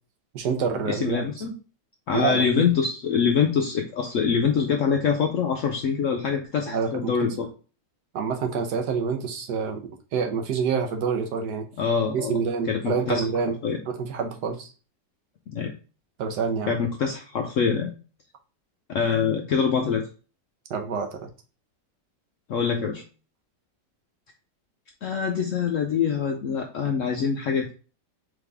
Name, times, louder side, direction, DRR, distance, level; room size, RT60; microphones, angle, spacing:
voice 1, 0.3-1.3 2.1-2.6 6.7-7.1 8.1-9.8 10.1-11.7 12.1-13.6 13.9-14.7 16.2-16.8 20.7-21.3, right 6 dB, 75° right, 4 dB, 1.3 m, -27 dB
voice 2, 0.9-1.5 2.1-7.5 11.8-12.4 12.7-13.2 13.6-13.8 15.5-15.7 16.7-17.9 18.9-20.1 22.5-23.0 25.0-27.7, left 6 dB, 70° left, 3 dB, 0.7 m, -24 dB
3.8 x 3.5 x 3.3 m, 0.35 s
omnidirectional pair, 1.8 m